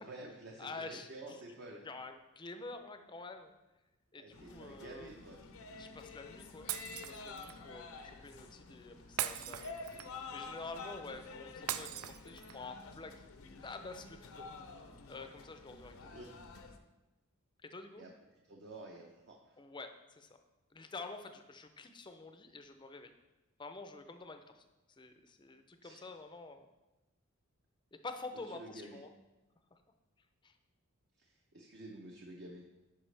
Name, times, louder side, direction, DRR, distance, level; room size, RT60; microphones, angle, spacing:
voice 1, 0.0-1.8 4.2-5.4 16.1-16.2 18.0-19.6 25.8-26.0 28.5-29.0 31.2-32.6, right 2 dB, 50° right, 0 dB, 0.8 m, -50 dB
voice 2, 0.6-1.4 1.8-3.5 4.1-5.1 5.8-6.7 7.1-9.7 10.3-13.2 13.6-14.5 15.1-15.9 17.6-18.0 19.6-20.3 20.7-23.1 23.6-24.6 25.0-26.7 27.9-29.1 29.7-29.8 30.4-30.5, left 3 dB, 20° left, 8 dB, 0.5 m, -48 dB
sound 1, 4.3-16.8, left 4 dB, 75° left, 0.7 m, -50 dB
Shatter, 6.7-7.6 9.2-10.3 11.7-12.7, right 11 dB, 90° right, 0.4 m, -40 dB
11.5 x 5.1 x 3.3 m, 1.1 s
head